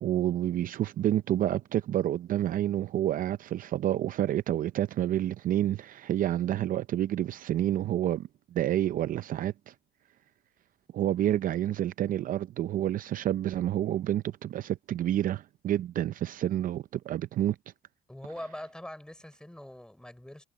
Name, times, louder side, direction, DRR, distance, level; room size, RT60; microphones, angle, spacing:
voice 1, 0.0-9.7 10.9-17.6, right 12 dB, 55° right, 0.5 m, -29 dB
voice 2, 18.1-20.4, left 1 dB, 5° left, 3.9 m, -43 dB
cardioid pair, 110°, 17 cm